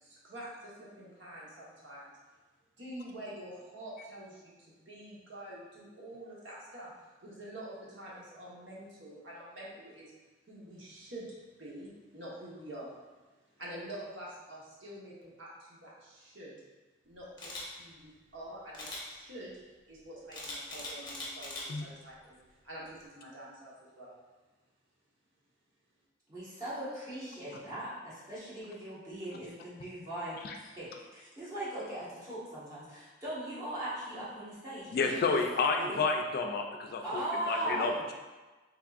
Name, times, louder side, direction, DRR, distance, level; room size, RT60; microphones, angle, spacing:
voice 1, 0.0-2.2 2.8-6.9 7.2-10.1 10.5-11.3 11.6-13.1 13.6-16.6 17.0-19.5 19.9-24.1, right 1 dB, 75° right, -6 dB, 1.0 m, -47 dB
Camera, 17.4-17.6 18.7-19.0 20.3-21.6 22.1-22.4, left 2 dB, 25° left, 0.7 m, -41 dB
voice 2, 26.3-35.4 35.8-36.0 37.0-38.1, right 1 dB, 20° right, -10 dB, 1.3 m, -39 dB
voice 3, 34.9-37.2 37.5-38.1, left 4 dB, 55° left, 3 dB, 0.3 m, -30 dB
3.5 x 3.5 x 2.4 m, 1.2 s
head